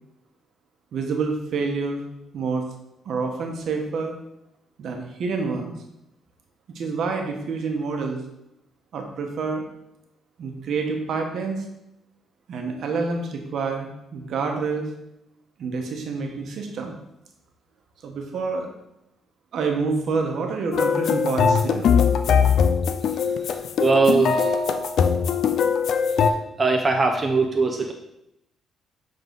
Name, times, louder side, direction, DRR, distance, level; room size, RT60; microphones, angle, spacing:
voice 1, 0.9-2.0 2.3-2.6 3.0-4.1 4.8-5.7 6.7-8.2 8.9-9.6 10.4-11.6 12.5-14.9 15.6-16.9 18.0-18.7 19.5-21.9, right 4 dB, 65° right, 3 dB, 1.1 m, -27 dB
sound 1, 20.7-26.3, left 6 dB, 70° left, 0.5 m, -21 dB
voice 2, 23.8-24.5 26.6-27.9, right 3 dB, 30° right, 3 dB, 0.6 m, -20 dB
7.0 x 3.9 x 3.9 m, 0.83 s
cardioid pair, 90°, 0 cm